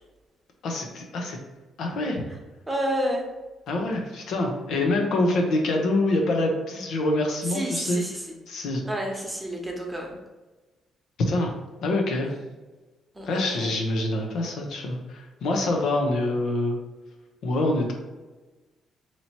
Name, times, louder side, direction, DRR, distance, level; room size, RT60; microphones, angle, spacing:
voice 1, 0.6-1.4 1.8-2.2 3.7-8.0 8.5-8.8 11.3-11.5 11.8-12.3 13.2-16.8 17.4-17.9, left 2 dB, 75° left, 1 dB, 0.7 m, -25 dB
voice 2, 2.7-3.3 7.5-8.2 8.8-10.2 13.1-13.7, equal, 10° right, -1 dB, 1.0 m, -30 dB
2.9 x 2.8 x 4.3 m, 1.2 s
cardioid pair, 90°, 0 cm